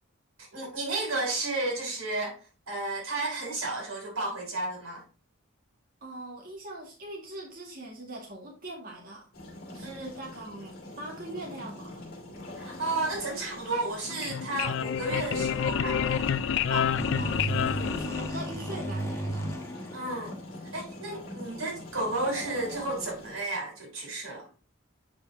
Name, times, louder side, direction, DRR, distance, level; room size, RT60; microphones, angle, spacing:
voice 1, 0.4-2.4 2.7-5.0 9.8-10.1 12.6-17.2 19.9-20.3 20.7-24.5, right 2 dB, 85° right, 3.2 m, -33 dB
voice 2, 6.0-9.3 9.7-12.1 17.2-19.5, right 1 dB, 45° right, 2.0 m, -41 dB
sound 1, 9.3-23.4, left 1 dB, 50° left, 2.5 m, -43 dB
sound 2, 14.0-18.8, left 8 dB, 65° left, 0.4 m, -29 dB
sound 3, 17.0-20.7, right 1 dB, 15° left, 1.1 m, -34 dB
8.3 x 5.3 x 2.8 m
head